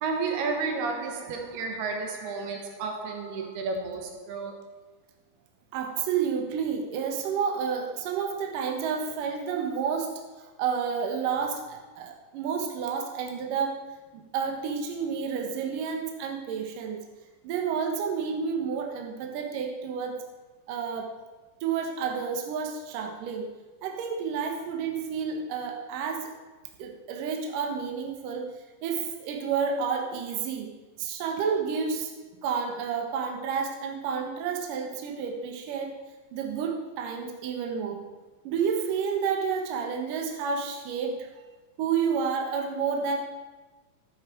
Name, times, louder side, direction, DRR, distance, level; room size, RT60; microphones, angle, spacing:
voice 1, 0.0-4.7, right 4 dB, 90° right, 3.4 m, -32 dB
voice 2, 5.7-13.8 14.1-17.0 17.4-20.2 20.7-21.1 21.6-23.5 23.8-26.3 26.8-28.5 28.8-30.7 31.0-32.1 32.4-36.0 36.3-38.1 38.4-41.3 41.8-43.2, right 6 dB, 65° right, 2.6 m, -30 dB
11.5 x 9.9 x 4.5 m
omnidirectional pair, 4.4 m